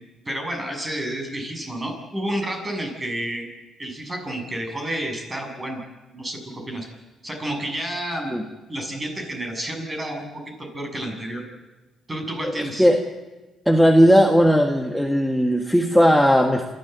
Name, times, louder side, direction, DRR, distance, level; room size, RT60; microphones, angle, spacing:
voice 1, 0.3-3.5 3.8-5.8 6.1-6.9 7.2-8.3 8.7-10.3 10.6-11.4 12.1-12.9, right 1 dB, 25° right, 3 dB, 7.0 m, -30 dB
voice 2, 12.4-13.0 13.6-16.7, equal, ahead, 3 dB, 1.5 m, -17 dB
27.5 x 13.5 x 8.1 m, 1.2 s
cardioid pair, 90°, 0 cm